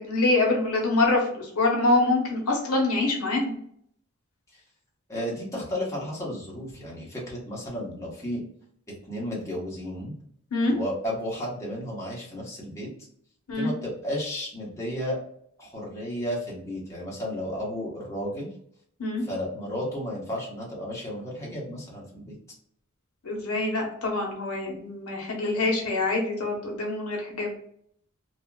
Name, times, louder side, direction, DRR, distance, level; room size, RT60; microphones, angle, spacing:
voice 1, 0.0-3.6 10.5-10.7 13.5-13.7 19.0-19.2 23.2-27.5, left 2 dB, 80° left, 0 dB, 0.8 m, -25 dB
voice 2, 5.1-8.4 9.1-10.1 10.7-12.9 13.5-15.2 15.6-18.5 19.2-22.3, equal, 15° left, -5 dB, 0.9 m, -33 dB
2.8 x 2.4 x 2.2 m, 0.66 s
head